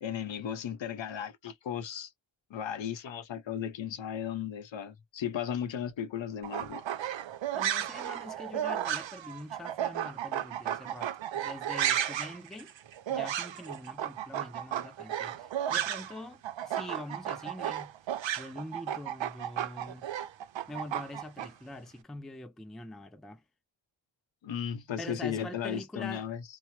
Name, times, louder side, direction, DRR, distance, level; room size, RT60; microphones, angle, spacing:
voice 1, 0.0-2.1 2.5-6.8 24.4-26.4, left 9 dB, 70° left, 0.7 m, -35 dB
sound 1, 6.4-16.2 16.4-21.5, right 10 dB, 70° right, 0.6 m, -33 dB
voice 2, 7.5-12.7 13.1-17.9 18.4-20.1 20.7-23.4 25.0-26.3, left 1 dB, ahead, 0.4 m, -44 dB
2.8 x 2.0 x 2.9 m
wide cardioid pair, 80°, 46 cm